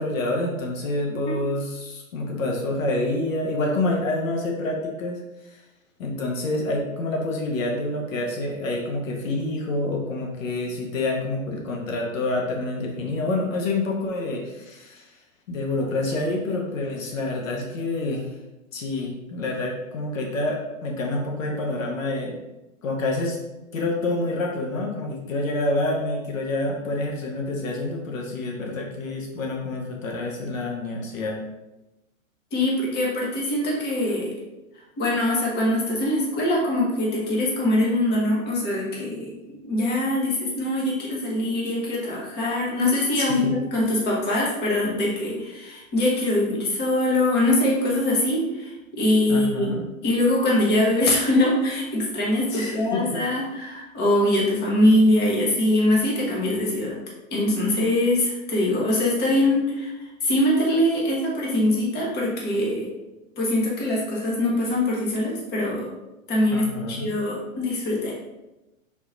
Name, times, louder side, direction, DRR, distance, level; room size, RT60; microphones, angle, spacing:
voice 1, 0.0-5.2 5.5-5.6 6.0-15.1 15.5-18.3 18.7-22.4 22.8-23.4 23.7-31.4 43.2-43.5 49.3-49.9 52.5-53.2 66.5-67.1, left 2 dB, 70° left, 0 dB, 1.0 m, -27 dB
voice 2, 32.5-34.4 35.0-39.3 39.6-49.7 50.0-57.0 57.3-62.9 63.4-65.9 66.3-68.1, left 1 dB, 25° left, -3 dB, 1.2 m, -23 dB
3.9 x 3.0 x 3.9 m, 1.0 s
hypercardioid pair, 125°, 41 cm